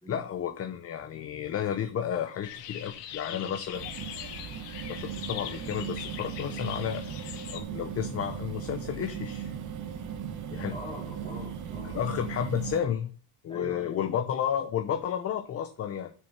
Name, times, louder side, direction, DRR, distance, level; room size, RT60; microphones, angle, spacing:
voice 1, 0.1-3.8 4.9-7.0 7.5-9.5 10.5-10.8 11.8-13.1 13.4-16.1, left 9 dB, 35° left, 0.7 m, -32 dB
sound 1, 2.4-7.6, left 10 dB, 90° left, 1.9 m, -41 dB
sound 2, 3.7-12.8, right 8 dB, 45° right, 1.2 m, -38 dB
voice 2, 10.7-12.0 13.5-14.1, left 1 dB, 15° left, 2.7 m, -43 dB
7.7 x 6.6 x 5.6 m
cardioid pair, 155°, 42 cm